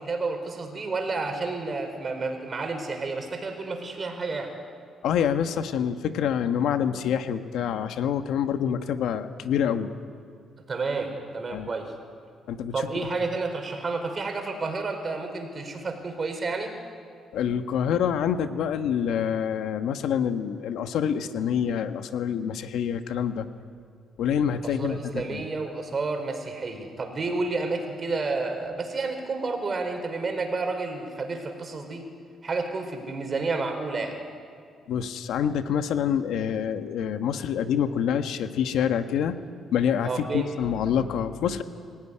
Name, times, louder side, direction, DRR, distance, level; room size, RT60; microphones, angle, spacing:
voice 1, 0.0-4.5 10.7-11.9 12.7-16.7 24.6-32.0 32.4-34.2 40.0-40.5, right 3 dB, 40° right, 5 dB, 4.5 m, -30 dB
voice 2, 5.0-9.9 11.5-11.7 12.5-13.1 17.3-23.5 24.2-25.4 34.9-39.4 39.7-41.6, left 8 dB, 80° left, 8 dB, 1.2 m, -26 dB
23.5 x 16.0 x 10.0 m, 2.3 s
cardioid pair, 90°, 0 cm